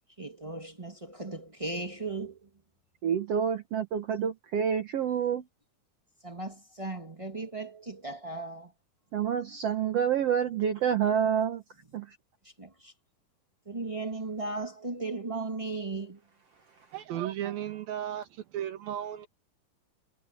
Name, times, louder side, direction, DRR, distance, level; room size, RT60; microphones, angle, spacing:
voice 1, 0.2-2.4 6.2-8.7 12.6-12.9 13.7-16.2, right 3 dB, 30° right, 0.5 m, -36 dB
voice 2, 3.0-5.4 9.1-11.6 11.9-12.1, right 8 dB, 65° right, 1.6 m, -28 dB
voice 3, 16.9-19.3, right 11 dB, 80° right, 3.5 m, -35 dB
omnidirectional pair, 4.1 m